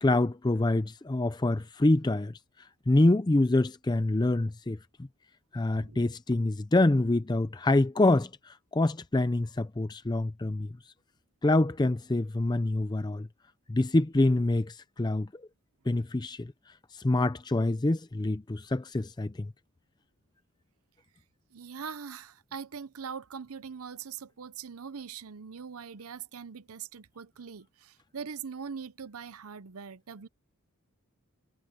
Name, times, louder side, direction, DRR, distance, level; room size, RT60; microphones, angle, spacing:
voice 1, 0.0-2.3 2.9-4.8 5.5-10.7 11.4-13.3 13.7-15.3 15.9-16.5 16.9-19.5, left 2 dB, 20° left, 0.4 m, -26 dB
voice 2, 21.5-30.3, right 6 dB, 80° right, 0.7 m, -42 dB
head